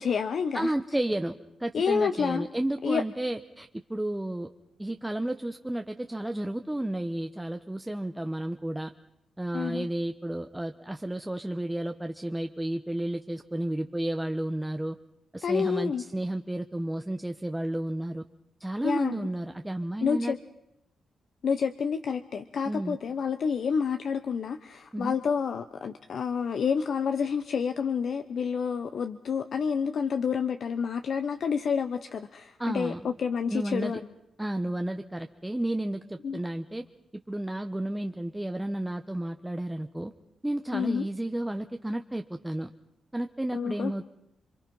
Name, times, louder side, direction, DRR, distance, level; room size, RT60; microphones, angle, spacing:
voice 1, 0.0-0.7 1.7-2.5 2.8-3.0 9.5-9.9 15.4-16.0 18.8-19.2 20.0-20.4 21.4-34.0 36.2-36.4 40.7-41.0 43.5-43.9, left 6 dB, 60° left, 9 dB, 0.9 m, -29 dB
voice 2, 0.5-4.5 4.8-8.9 9.4-15.0 15.3-18.2 18.6-20.3 22.7-23.0 24.9-25.2 32.6-33.1 33.5-34.0 34.4-36.8 37.3-40.1 40.4-42.7 43.1-44.1, right 1 dB, 10° right, 6 dB, 0.8 m, -32 dB
28.0 x 23.5 x 5.5 m, 0.84 s
cardioid pair, 95°, 0 cm